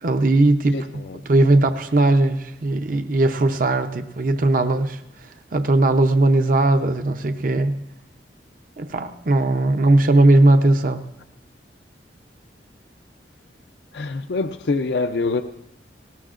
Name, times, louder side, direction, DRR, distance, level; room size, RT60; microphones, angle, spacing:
voice 1, 0.0-0.8 1.3-7.7 8.8-11.1, right 2 dB, 50° right, 8 dB, 0.6 m, -18 dB
voice 2, 0.7-1.2 13.9-15.4, left 3 dB, 70° left, 8 dB, 0.5 m, -25 dB
19.0 x 18.5 x 2.5 m, 0.86 s
head